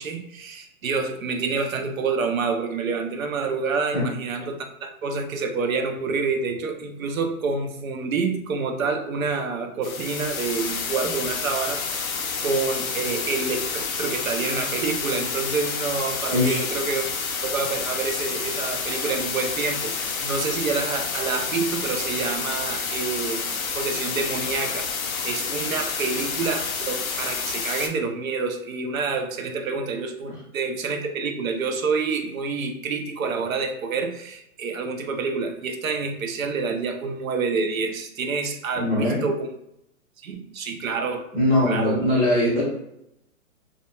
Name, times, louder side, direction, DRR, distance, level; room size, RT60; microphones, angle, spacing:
voice 1, 0.0-12.1 12.4-17.0 17.4-23.4 23.7-39.5 40.2-41.2 41.7-42.0, right 4 dB, 75° right, 4 dB, 0.6 m, -28 dB
sound 1, 9.8-27.9, left 5 dB, 80° left, 0.6 m, -29 dB
voice 2, 16.3-16.6 26.1-26.2 38.7-39.2 41.3-42.6, left 1 dB, 10° left, -10 dB, 0.4 m, -21 dB
2.4 x 2.2 x 2.9 m, 0.79 s
hypercardioid pair, 135°, 41 cm